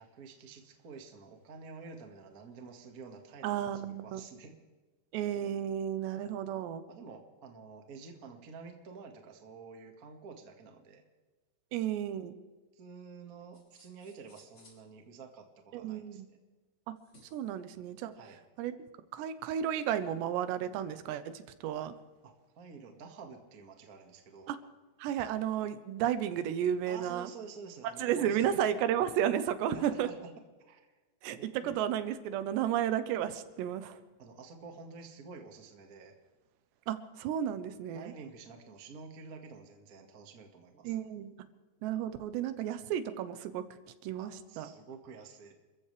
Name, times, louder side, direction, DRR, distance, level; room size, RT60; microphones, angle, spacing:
voice 1, 0.0-4.5 6.9-11.0 12.7-16.2 18.1-18.4 22.2-24.5 26.9-28.7 29.7-30.3 30.6-31.0 31.3-31.8 34.2-36.1 37.9-40.9 44.1-45.5, right 5 dB, 55° right, 4 dB, 1.0 m, -49 dB
voice 2, 3.4-4.2 5.1-6.8 11.7-12.4 15.7-16.3 16.9-17.0 17.3-18.1 18.6-18.8 19.1-21.9 24.5-24.6 25.0-27.3 28.0-30.1 31.2-34.0 36.9-38.1 40.8-41.3 41.8-43.7 44.0-44.3 44.6-44.7, right 10 dB, 90° right, 11 dB, 3.1 m, -33 dB
sound 1, 13.5-14.9 16.9-17.6, left 1 dB, 25° left, 4.6 m, -62 dB
29.5 x 14.5 x 3.4 m, 1.3 s
omnidirectional pair, 4.9 m